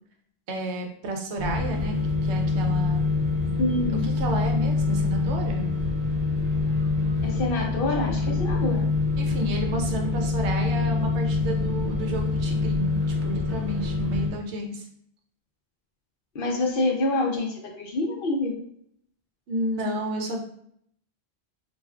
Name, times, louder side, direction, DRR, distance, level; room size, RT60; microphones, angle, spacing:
voice 1, 0.5-2.0 2.2-3.1 4.0-5.7 9.2-14.9 19.5-20.4, right 1 dB, 80° right, 2 dB, 0.9 m, -31 dB
sound 1, 1.4-14.3, left 3 dB, 40° right, 0.8 m, -25 dB
voice 2, 3.6-4.1 7.2-8.9 16.3-18.6, left 2 dB, 60° left, 1 dB, 0.7 m, -26 dB
3.3 x 2.4 x 2.3 m, 0.68 s
omnidirectional pair, 1.1 m